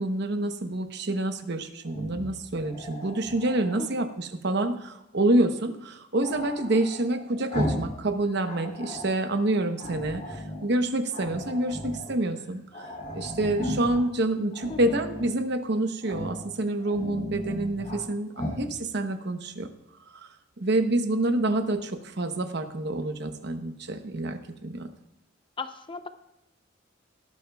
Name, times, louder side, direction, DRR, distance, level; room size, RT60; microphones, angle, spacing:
voice 1, 0.0-12.6 13.1-19.7 20.6-24.9, right 2 dB, 60° right, 7 dB, 0.9 m, -27 dB
Growling, 1.8-3.9 6.2-8.0 8.3-9.2 9.8-10.7 11.1-12.1 12.4-12.5 12.7-14.0 14.5-15.3 16.0-16.5 16.8-18.0 18.3-18.7, left 1 dB, 45° left, 3.0 m, -36 dB
voice 2, 25.6-26.1, left 4 dB, 25° left, 10 dB, 0.6 m, -37 dB
18.0 x 11.5 x 2.3 m, 0.86 s
head